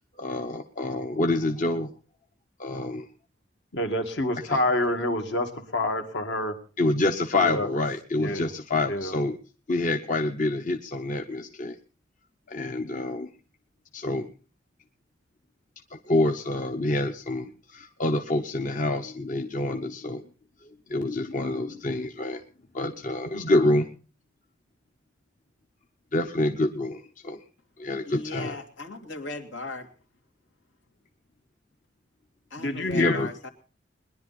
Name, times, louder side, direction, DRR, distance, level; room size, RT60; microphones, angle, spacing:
voice 1, 0.2-1.9 2.6-3.1 4.5-4.6 6.8-9.4 9.7-11.8 12.5-13.3 13.9-14.3 15.9-20.3 20.6-22.4 22.7-23.9 26.1-27.4 27.8-28.6 32.9-33.3, left 2 dB, 45° left, 5 dB, 0.9 m, -27 dB
voice 2, 3.7-6.6 7.4-7.7 8.2-8.5 8.9-9.2 32.6-33.2, left 1 dB, 65° left, 5 dB, 2.1 m, -27 dB
voice 3, 28.0-29.9 32.5-33.5, left 2 dB, 85° left, 4 dB, 2.7 m, -38 dB
21.5 x 11.0 x 4.2 m, 0.37 s
head